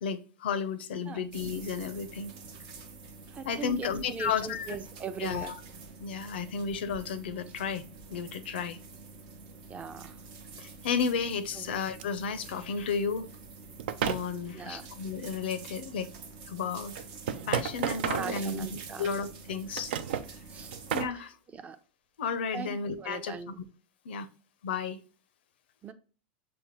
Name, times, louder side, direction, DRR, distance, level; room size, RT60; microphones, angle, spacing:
voice 1, 0.0-2.3 3.5-4.8 5.2-5.6 6.0-7.8 8.1-8.8 10.6-13.3 14.0-16.1 16.5-16.9 17.5-19.9 20.9-21.4 22.2-23.3 24.0-24.3 24.6-25.0, left 6 dB, 85° left, 0.5 m, -33 dB
sound 1, 1.3-21.0, right 4 dB, 65° right, 0.8 m, -47 dB
voice 2, 3.3-5.5 9.7-10.2 11.6-11.7 14.5-14.9 18.2-19.1 20.5-20.7 21.1-21.2 21.5-21.8 22.5-23.6 25.8-25.9, right 6 dB, 25° right, 0.5 m, -40 dB
sound 2, 12.0-12.1 13.8-14.3 16.0-16.1 17.0-18.9 19.5-20.3 20.7-21.2, right 8 dB, 85° right, 0.4 m, -32 dB
5.9 x 2.1 x 3.0 m
supercardioid pair, 115°, 5 cm